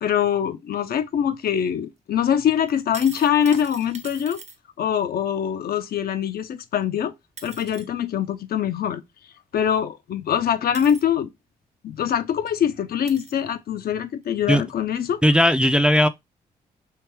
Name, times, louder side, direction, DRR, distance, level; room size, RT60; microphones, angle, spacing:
voice 1, 0.0-4.4 4.8-7.1 7.4-9.0 9.5-11.3 11.8-15.2, left 9 dB, 60° left, 0.5 m, -23 dB
sound 1, 2.7-4.6 6.8-6.9 7.4-7.9 9.7-9.8 10.7-11.0 12.0-12.1 12.5-12.6 13.1-13.4 14.2-14.3, right 3 dB, 40° right, 0.8 m, -42 dB
voice 2, 15.2-16.1, equal, 5° right, 0.4 m, -17 dB
3.3 x 2.9 x 3.0 m
supercardioid pair, 50°, 18 cm